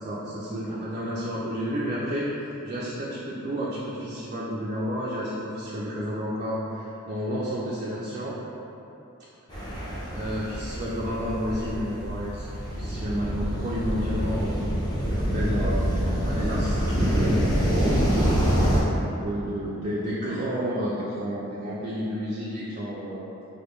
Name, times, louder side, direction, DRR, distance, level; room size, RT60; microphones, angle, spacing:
voice 1, 0.0-2.3 2.6-8.4 9.7-12.5 12.8-14.6 15.1-17.3 17.7-18.5 19.2-23.3, equal, 35° right, -7 dB, 0.4 m, -31 dB
sound 1, 9.5-18.8, equal, 20° left, 0.7 m, -26 dB
4.9 x 2.2 x 3.1 m, 2.9 s
head